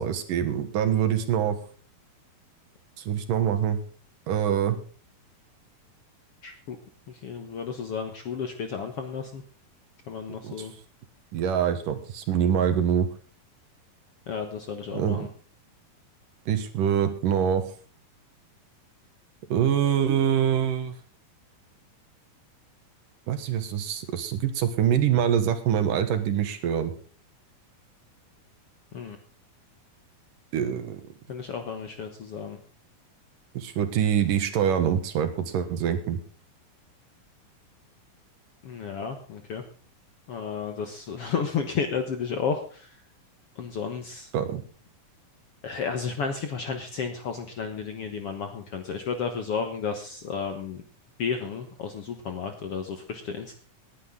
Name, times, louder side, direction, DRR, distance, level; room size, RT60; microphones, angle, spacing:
voice 1, 0.0-1.6 3.0-3.8 4.3-4.8 10.4-10.7 11.3-13.1 14.9-15.3 16.5-17.6 19.5-21.0 23.3-26.9 30.5-31.0 33.5-36.2 44.3-44.6, right 9 dB, 70° right, 9 dB, 3.0 m, -25 dB
voice 2, 6.4-6.8 7.1-9.4 10.1-10.7 14.3-15.3 28.9-29.2 31.3-32.6 38.6-39.6 40.3-42.9 43.6-44.3 45.6-50.8 51.2-53.5, left 6 dB, 55° left, 6 dB, 1.7 m, -32 dB
19.0 x 10.0 x 3.8 m, 0.42 s
omnidirectional pair, 4.2 m